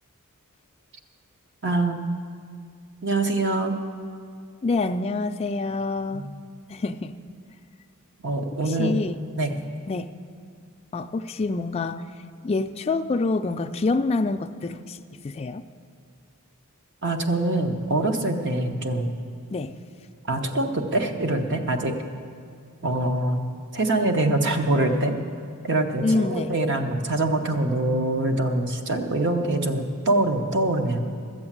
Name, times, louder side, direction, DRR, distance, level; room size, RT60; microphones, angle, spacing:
voice 1, 1.6-2.1 3.0-3.8 6.1-6.3 8.2-9.0 9.4-9.6 17.0-19.1 20.3-21.9 22.8-23.4 23.7-25.2 25.6-31.0, right 2 dB, 55° right, 5 dB, 0.9 m, -24 dB
voice 2, 4.6-6.3 6.7-7.2 8.7-9.2 9.9-10.1 10.9-12.0 12.4-15.0 15.2-15.6 19.5-19.8 26.0-26.5, left 3 dB, 25° left, 7 dB, 0.3 m, -26 dB
13.0 x 7.8 x 7.4 m, 2.2 s
head